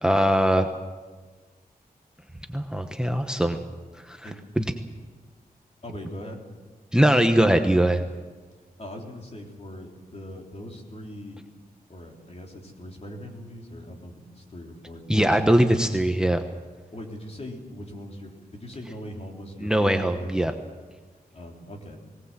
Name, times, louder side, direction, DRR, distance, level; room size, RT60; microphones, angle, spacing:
voice 1, 0.0-0.7 2.5-3.6 4.1-4.3 4.6-4.7 6.9-8.0 15.1-16.4 19.6-20.5, right 1 dB, 5° right, 6 dB, 1.0 m, -21 dB
voice 2, 5.8-6.4 8.8-11.4 11.9-15.6 16.9-20.2 21.3-22.0, left 1 dB, 45° left, 1 dB, 3.5 m, -40 dB
20.0 x 19.0 x 7.5 m, 1.4 s
wide cardioid pair, 110°, 15 cm